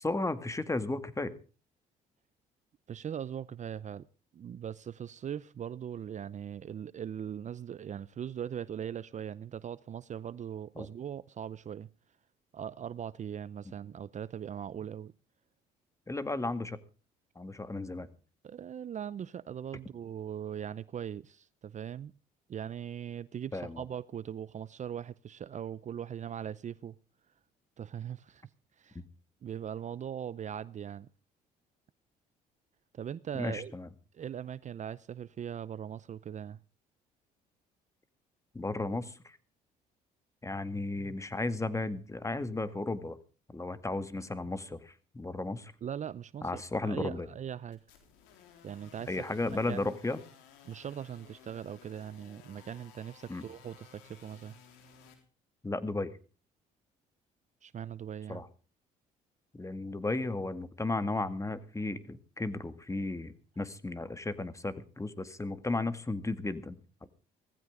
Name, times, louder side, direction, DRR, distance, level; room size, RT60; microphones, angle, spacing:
voice 1, 0.0-1.3 10.8-10.9 16.1-16.8 17.4-18.1 23.5-23.8 29.0-29.1 33.4-33.9 38.5-39.4 40.4-43.2 43.5-45.7 46.4-47.3 49.1-50.2 53.3-53.4 55.6-56.1 58.3-58.5 59.5-67.1, left 2 dB, 15° left, 2.0 m, -34 dB
voice 2, 2.9-4.1 4.3-11.9 12.5-15.1 18.4-22.1 22.5-27.0 27.8-28.4 28.8-29.0 29.4-31.1 32.9-33.7 34.1-36.6 45.8-47.8 48.6-50.0 50.6-54.6 57.6-58.4, right 9 dB, 45° right, 0.6 m, -40 dB
sound 1, 47.7-55.2, left 7 dB, 90° left, 3.9 m, -57 dB
18.0 x 15.5 x 3.7 m
supercardioid pair, 70°, 18 cm